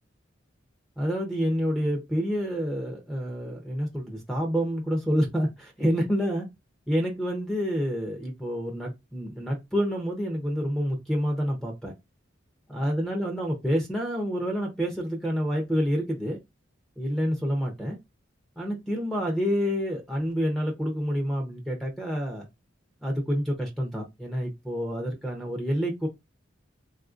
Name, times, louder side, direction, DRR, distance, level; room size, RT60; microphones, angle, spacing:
voice 1, 1.0-6.5 6.9-11.9 12.7-16.4 17.0-18.0 18.6-22.4 23.0-26.1, equal, ahead, 0.6 m, -28 dB
3.5 x 2.5 x 2.4 m
head